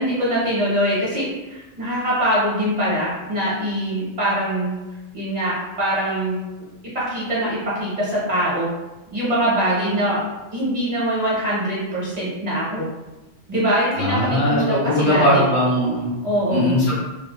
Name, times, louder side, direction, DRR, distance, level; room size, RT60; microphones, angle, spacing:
voice 1, 0.0-4.7 5.1-6.4 7.1-8.7 9.1-10.2 10.5-12.9 13.5-15.4 16.2-16.7, right 1 dB, 40° right, -8 dB, 1.1 m, -23 dB
voice 2, 14.0-16.1 16.5-16.9, equal, 75° left, -6 dB, 1.2 m, -19 dB
2.8 x 2.3 x 2.3 m, 1.1 s
omnidirectional pair, 1.1 m